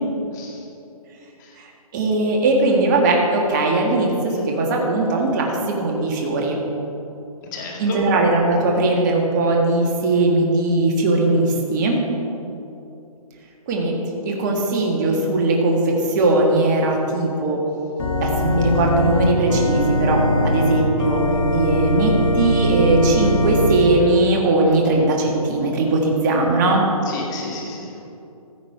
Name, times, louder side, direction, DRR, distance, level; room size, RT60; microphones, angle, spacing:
voice 1, 0.3-0.7 1.4-1.6 4.3-4.4 7.5-8.0 27.1-27.9, left 3 dB, 30° left, -1 dB, 2.1 m, -32 dB
voice 2, 1.9-6.6 7.8-12.0 13.7-14.0 14.2-17.6 18.2-21.2 21.5-26.8, right 2 dB, 30° right, 0 dB, 1.7 m, -19 dB
Organ, 18.0-23.8, equal, 65° left, 1.6 m, -21 dB
15.0 x 7.3 x 4.9 m, 2.8 s
hypercardioid pair, 150°, 19 cm